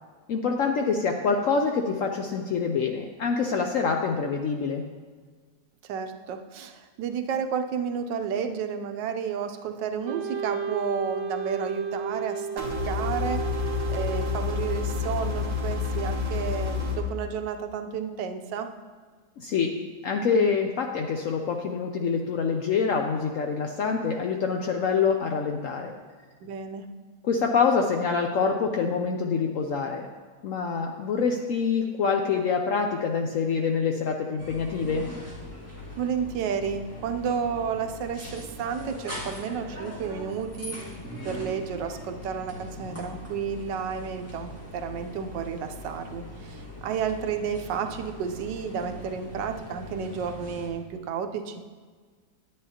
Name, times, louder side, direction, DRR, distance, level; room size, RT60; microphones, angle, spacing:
voice 1, 0.3-4.8 19.4-19.7 20.0-25.9 27.2-30.1 30.4-35.1, left 5 dB, 70° left, 3 dB, 0.7 m, -26 dB
voice 2, 5.9-13.4 13.9-18.7 26.4-26.8 31.1-31.3 36.0-40.8 41.2-51.6, right 7 dB, 85° right, 6 dB, 1.3 m, -31 dB
Wind instrument woodwind instrument, 10.0-15.2, right 5 dB, 70° right, 1.1 m, -33 dB
sound 1, 12.6-17.0, left 5 dB, 35° right, 1.4 m, -29 dB
sound 2, 34.4-50.7, left 1 dB, 10° left, 1.4 m, -41 dB
9.6 x 9.4 x 2.8 m, 1.5 s
omnidirectional pair, 1.9 m